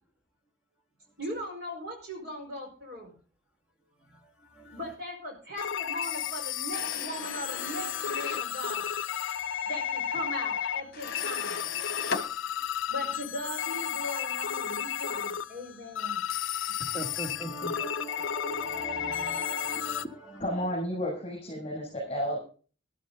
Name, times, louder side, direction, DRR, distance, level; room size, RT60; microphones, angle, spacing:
voice 1, 1.2-3.1 4.7-8.9 9.7-11.7 12.9-16.2, equal, 50° right, 2 dB, 5.0 m, -39 dB
voice 2, 4.2-4.8 16.6-20.6, right 1 dB, 5° right, -3 dB, 2.2 m, -41 dB
sound 1, 5.6-20.0, left 10 dB, 75° left, 0.5 m, -33 dB
sound 2, 6.7-8.5 10.9-12.3, left 4 dB, 45° left, 1.3 m, -37 dB
voice 3, 20.4-22.4, equal, 30° left, -4 dB, 7.4 m, -32 dB
14.0 x 12.0 x 3.9 m, 0.39 s
head